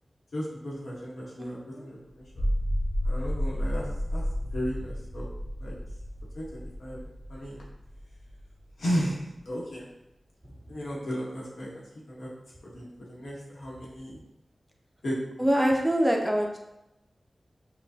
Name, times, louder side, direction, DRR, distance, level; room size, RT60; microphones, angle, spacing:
voice 1, 0.3-2.5 3.0-3.9 4.1-5.3 5.6-5.8 6.3-7.6 8.8-9.9 10.7-12.3 12.6-14.2 15.0-15.2, equal, 90° left, -5 dB, 1.2 m, -35 dB
voice 2, 1.4-1.9 15.4-16.6, equal, 10° right, 1 dB, 0.6 m, -25 dB
sound 1, 2.2-8.7, equal, 55° left, 0.9 m, -32 dB
5.7 x 2.4 x 2.7 m, 0.91 s
wide cardioid pair, 65°, 0 cm